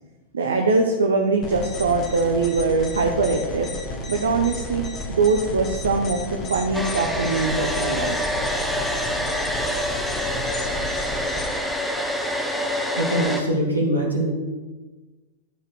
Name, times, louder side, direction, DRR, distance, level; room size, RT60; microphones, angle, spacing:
voice 1, 0.3-3.7 4.1-6.2 6.5-8.2, right 4 dB, 70° right, 3 dB, 0.9 m, -22 dB
sound 1, 1.4-11.5, left 2 dB, 30° left, 1.8 m, -32 dB
Domestic sounds home sounds, 6.7-13.4, equal, ahead, 1.2 m, -26 dB
voice 2, 12.9-14.3, right 1 dB, 85° right, -2 dB, 1.7 m, -23 dB
11.5 x 5.1 x 6.3 m, 1.2 s
figure-of-eight pair, 90°, 0 cm